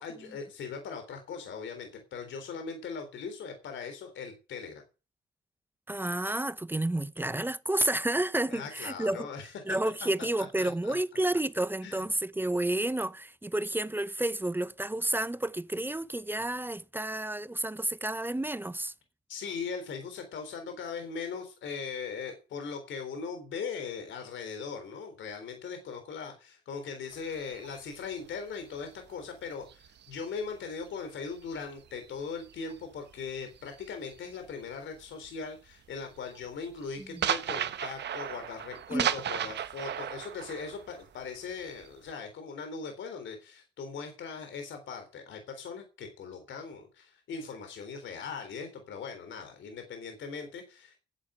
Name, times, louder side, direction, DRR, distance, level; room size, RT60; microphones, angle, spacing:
voice 1, 0.0-4.8 8.5-9.5 10.4-11.0 11.8-12.0 19.3-51.0, left 5 dB, 70° left, 3.8 m, -40 dB
voice 2, 5.9-9.3 9.7-18.9 37.0-37.2 38.9-39.1, right 1 dB, 10° right, 0.8 m, -30 dB
sound 1, 27.1-31.0 31.3-34.7 35.0-35.4 35.7-42.1, right 9 dB, 60° right, 1.2 m, -36 dB
11.0 x 7.9 x 8.9 m
cardioid pair, 90°, 20 cm